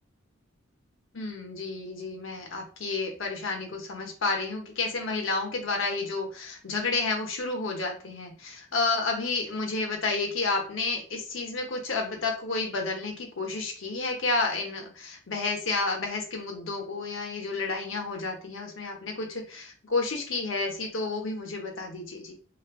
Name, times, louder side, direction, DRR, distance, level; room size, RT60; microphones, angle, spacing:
voice 1, 1.1-22.3, left 3 dB, 75° left, 2 dB, 0.8 m, -31 dB
2.5 x 2.4 x 3.5 m, 0.41 s
head